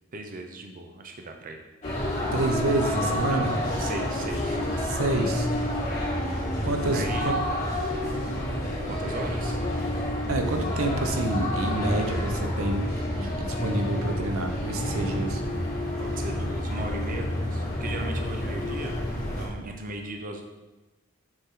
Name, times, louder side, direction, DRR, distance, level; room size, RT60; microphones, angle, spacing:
voice 1, 0.1-1.6 3.3-3.5 3.8-4.6 5.9-6.1 6.9-7.4 7.9-8.4 8.9-9.8 16.0-18.9 19.3-20.4, right 2 dB, 40° right, 4 dB, 0.7 m, -37 dB
sound 1, 1.8-19.5, left 1 dB, 35° left, 2.6 m, -29 dB
voice 2, 2.3-3.5 4.8-5.5 6.6-7.3 10.3-15.4, right 2 dB, 85° right, 5 dB, 0.9 m, -28 dB
7.1 x 6.7 x 3.8 m, 1.1 s
head